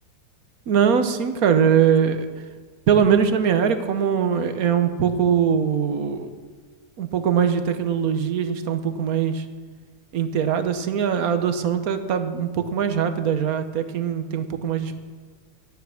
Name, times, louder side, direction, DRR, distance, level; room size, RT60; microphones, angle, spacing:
voice 1, 0.7-2.3 2.9-6.3 7.0-9.4 10.1-15.0, right 7 dB, 60° right, 8 dB, 1.2 m, -21 dB
12.5 x 10.5 x 6.4 m, 1.5 s
omnidirectional pair, 1.9 m